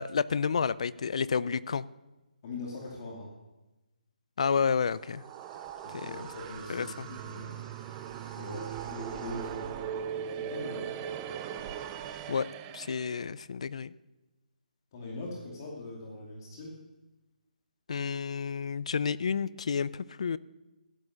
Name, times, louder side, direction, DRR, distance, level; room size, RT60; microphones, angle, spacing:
voice 1, 0.0-1.8 4.4-5.2 5.9-6.1 6.7-7.1 12.3-12.5 12.7-13.9 17.9-20.4, left 6 dB, 45° left, 18 dB, 0.5 m, -30 dB
voice 2, 2.4-3.3 5.8-7.6 8.4-9.7 10.3-10.9 14.9-16.8, left 2 dB, 25° left, -2 dB, 2.5 m, -41 dB
sound 1, 4.9-10.3 10.6-10.7 11.0-12.3, left 3 dB, 70° left, 4.3 m, -60 dB
sound 2, 4.9-13.2, right 9 dB, 15° right, 0.5 m, -39 dB
15.5 x 11.0 x 6.4 m, 1.1 s
hypercardioid pair, 175°, 5 cm